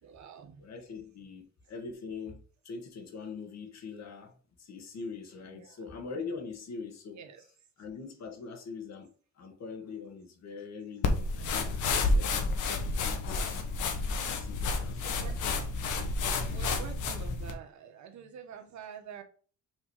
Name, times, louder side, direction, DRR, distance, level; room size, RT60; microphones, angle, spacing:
voice 1, 0.0-0.6 5.5-5.8 7.2-7.4 14.1-14.3 15.2-15.4 16.5-19.2, right 7 dB, 70° right, 1.4 m, -47 dB
voice 2, 0.6-7.2 7.8-12.6 13.0-13.5 14.3-15.6, left 4 dB, 60° left, 2.0 m, -43 dB
sound 1, 11.0-17.5, left 3 dB, 80° left, 1.3 m, -30 dB
6.2 x 3.7 x 4.9 m
cardioid pair, 90°, 30 cm